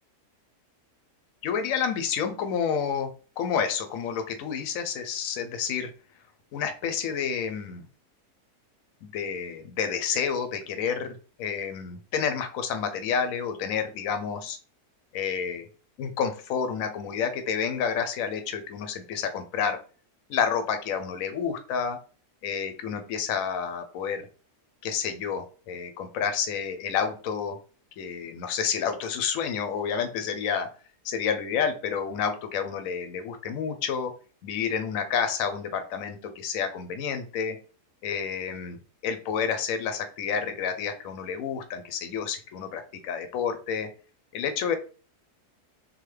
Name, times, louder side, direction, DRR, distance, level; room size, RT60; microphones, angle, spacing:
voice 1, 1.4-3.1 3.4-5.9 6.5-7.9 9.0-14.6 15.1-15.7 16.0-19.8 20.3-22.0 22.4-24.3 24.8-27.6 28.0-30.7 31.0-34.1 34.4-37.6 38.0-38.8 39.0-43.9 44.3-44.8, left 7 dB, 65° left, 8 dB, 1.0 m, -29 dB
3.9 x 2.8 x 3.2 m, 0.37 s
omnidirectional pair, 1.7 m